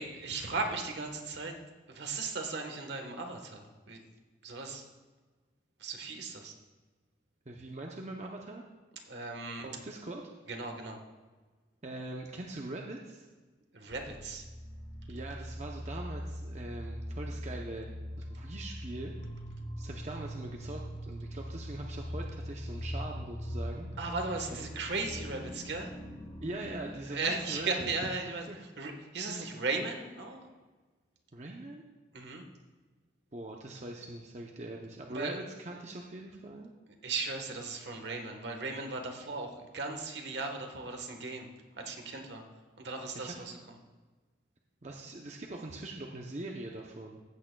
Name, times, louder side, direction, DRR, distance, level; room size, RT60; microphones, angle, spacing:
voice 1, 0.0-1.5 1.9-4.0 4.4-4.9 5.8-6.5 9.1-9.7 10.5-11.0 13.7-14.5 24.0-25.9 27.0-30.5 32.1-32.4 35.1-35.4 37.0-41.5 41.8-42.4 42.8-43.6, right 3 dB, 70° right, 4 dB, 1.3 m, -37 dB
voice 2, 7.5-8.6 9.6-10.2 11.8-13.3 15.1-19.1 19.8-23.9 26.4-27.9 28.5-28.6 29.3-29.5 31.3-31.8 33.3-36.7 43.1-43.6 44.8-47.2, right 2 dB, 35° right, 0 dB, 0.7 m, -42 dB
sound 1, 13.9-26.9, equal, 30° left, 0.8 m, -41 dB
15.0 x 8.5 x 2.3 m, 1.3 s
head